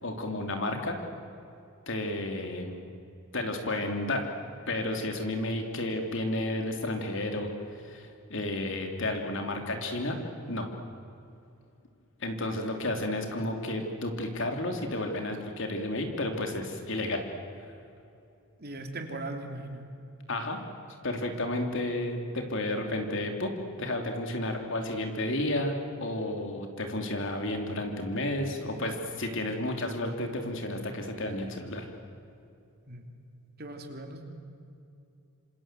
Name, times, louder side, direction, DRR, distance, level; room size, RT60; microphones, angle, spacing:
voice 1, 0.0-1.0 1.9-2.8 3.3-4.3 4.7-10.2 10.5-10.7 12.2-17.2 20.3-20.6 21.0-23.5 23.8-31.9, left 1 dB, 60° left, 4 dB, 3.4 m, -32 dB
voice 2, 18.6-19.9 32.8-33.1 33.6-34.2, right 2 dB, 45° right, 4 dB, 3.2 m, -39 dB
27.0 x 27.0 x 7.8 m, 2.6 s
head